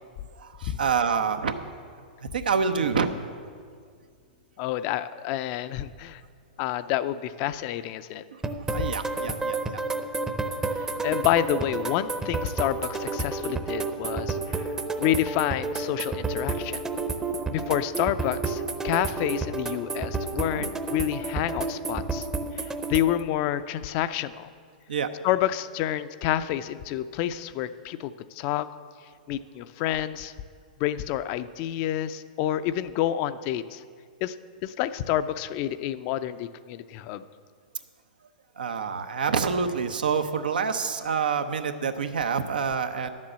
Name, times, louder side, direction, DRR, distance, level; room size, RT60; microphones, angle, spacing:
voice 1, 0.4-1.5 2.2-3.1 8.3-8.4 8.7-9.8 20.5-20.7 22.7-22.8 24.9-25.1 38.6-43.1, right 6 dB, 85° right, 8 dB, 0.8 m, -27 dB
voice 2, 4.6-6.2 6.6-8.2 8.8-8.9 10.7-14.7 15.0-16.8 17.5-22.3 22.5-24.5 25.2-28.7 29.3-30.3 30.8-33.8 34.2-34.3 34.6-37.2, left 12 dB, 45° left, 13 dB, 0.4 m, -28 dB
sound 1, 8.4-23.2, right 3 dB, 10° right, 0.7 m, -31 dB
11.0 x 7.5 x 7.4 m, 2.1 s
hypercardioid pair, 125°, 5 cm